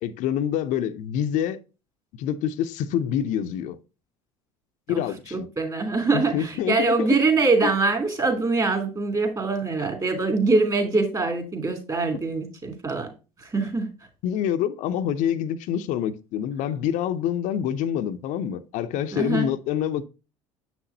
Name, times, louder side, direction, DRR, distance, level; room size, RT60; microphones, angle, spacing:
voice 1, 0.0-1.6 2.2-3.8 4.9-5.5 6.1-7.1 7.6-7.7 14.2-20.1, left 9 dB, 60° left, 0.6 m, -26 dB
voice 2, 5.3-13.1 13.4-13.9 19.1-19.5, right 3 dB, 25° right, 2.9 m, -23 dB
7.4 x 6.0 x 2.7 m
hypercardioid pair, 75°, 14 cm